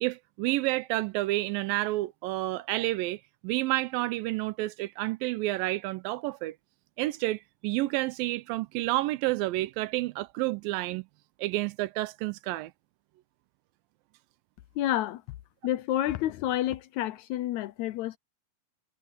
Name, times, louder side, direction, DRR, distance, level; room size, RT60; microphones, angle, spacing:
voice 1, 0.0-6.6 7.0-11.1 11.4-12.7, right 18 dB, 90° right, 2.4 m, -30 dB
voice 2, 14.8-15.2 15.6-18.2, left 13 dB, 85° left, 1.6 m, -29 dB
omnidirectional pair, 4.1 m